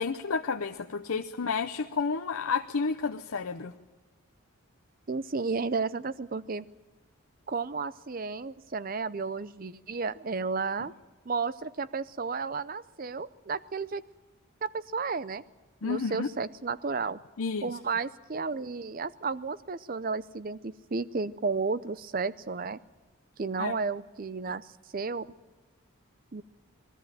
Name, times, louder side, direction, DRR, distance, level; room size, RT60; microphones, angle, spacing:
voice 1, 0.0-3.7 15.8-16.3 17.4-17.8 23.6-23.8, left 5 dB, 80° left, 4 dB, 0.7 m, -31 dB
voice 2, 5.1-6.7 7.5-10.9 11.3-14.0 14.6-15.4 15.8-17.2 17.6-22.8 23.4-24.7 24.9-25.3 26.3-26.4, right 4 dB, 40° right, 17 dB, 0.6 m, -32 dB
21.0 x 14.0 x 9.0 m, 1.3 s
head